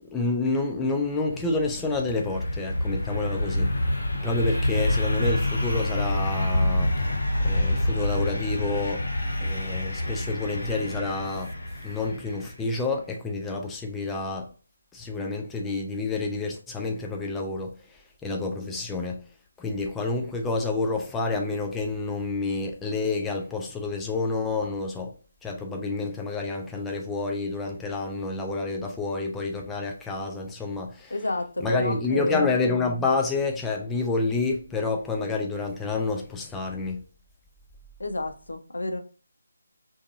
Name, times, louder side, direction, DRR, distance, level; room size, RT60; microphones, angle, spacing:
voice 1, 0.0-3.7 4.1-7.1 7.4-9.0 9.4-11.5 11.8-14.5 14.9-19.2 19.6-25.1 25.4-31.1 31.6-37.0, left 3 dB, 5° left, 0.3 m, -29 dB
sound 1, 1.1-12.7, left 1 dB, 60° left, 1.4 m, -27 dB
voice 2, 31.1-32.5 38.0-39.0, left 2 dB, 75° left, 0.5 m, -29 dB
2.6 x 2.5 x 2.3 m
figure-of-eight pair, 160°, 0 cm